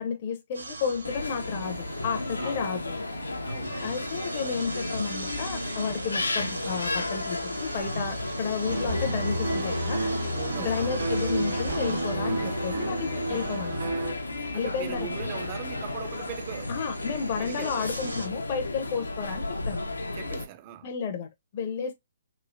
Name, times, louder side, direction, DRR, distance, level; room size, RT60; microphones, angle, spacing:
voice 1, 0.0-3.0 3.8-10.0 10.6-13.9 14.5-15.1 16.7-19.8 20.8-21.9, left 6 dB, 40° left, 0.6 m, -32 dB
Construction Works House Building Noise in Berlin, 0.5-18.3, right 3 dB, 80° right, 0.7 m, -41 dB
sound 1, 1.0-20.4, left 2 dB, 90° left, 0.6 m, -33 dB
voice 2, 3.4-4.0 10.3-11.1 14.5-18.0 20.1-20.9, right 12 dB, 35° right, 0.4 m, -41 dB
E Minor Unicorn, 8.6-14.1, right 1 dB, 65° right, 1.3 m, -31 dB
3.1 x 2.6 x 2.5 m
figure-of-eight pair, 135°, 0 cm